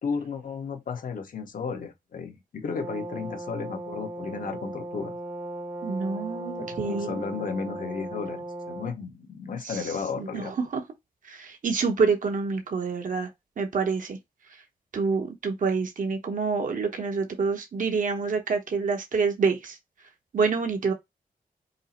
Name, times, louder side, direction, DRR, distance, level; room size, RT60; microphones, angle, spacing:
voice 1, 0.0-5.1 6.6-10.5, left 5 dB, 65° left, 1.1 m, -34 dB
Brass instrument, 2.7-9.0, right 1 dB, 15° right, 0.8 m, -37 dB
voice 2, 5.8-7.2 9.6-9.8 10.2-10.8 11.3-13.3 13.6-14.2 14.9-19.8 20.3-20.9, right 5 dB, 60° right, 1.0 m, -27 dB
5.4 x 2.0 x 4.2 m
wide cardioid pair, 115°, 15 cm